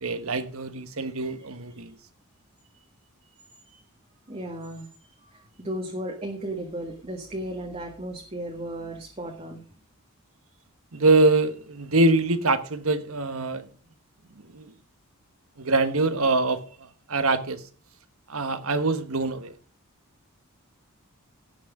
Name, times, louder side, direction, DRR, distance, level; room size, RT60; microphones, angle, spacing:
voice 1, 0.0-1.9 10.9-13.6 14.5-14.7 15.6-17.6 18.3-19.5, right 2 dB, 70° right, 1.3 m, -24 dB
voice 2, 4.3-9.6, right 1 dB, 25° right, 1.6 m, -35 dB
17.0 x 6.3 x 4.9 m
head